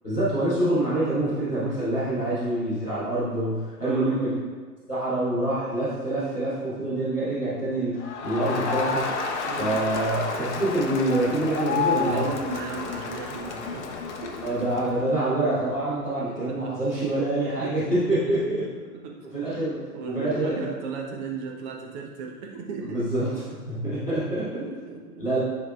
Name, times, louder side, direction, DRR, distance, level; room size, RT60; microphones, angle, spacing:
voice 1, 0.0-4.3 4.9-9.1 9.6-12.3 14.4-18.4 19.3-20.7 22.9-23.4 23.7-24.7 25.2-25.4, right 1 dB, ahead, -20 dB, 0.3 m, -26 dB
voice 2, 3.8-4.3 9.5-9.9 11.8-14.4 16.3-16.7 17.6-17.8 18.1-19.6 19.9-23.0 23.8-25.3, right 4 dB, 30° right, 0 dB, 1.0 m, -37 dB
Crowd, 8.0-15.0, left 5 dB, 45° left, 0.8 m, -30 dB
10.0 x 4.8 x 2.4 m, 1.4 s
figure-of-eight pair, 110°, 47 cm